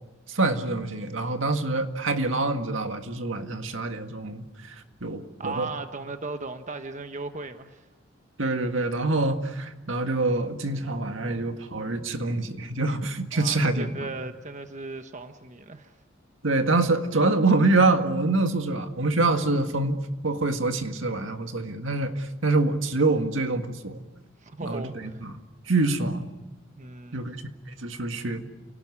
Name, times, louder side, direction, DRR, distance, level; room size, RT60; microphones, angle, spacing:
voice 1, 0.3-4.8 5.0-5.7 8.4-13.9 16.4-24.0 24.6-25.3 25.7-26.3 27.1-27.4 27.8-28.4, right 2 dB, 75° right, 6 dB, 1.9 m, -25 dB
voice 2, 5.4-7.9 13.3-16.0 24.4-25.2 26.8-27.2, right 3 dB, 40° right, 7 dB, 1.1 m, -37 dB
29.0 x 18.5 x 9.7 m, 1.1 s
head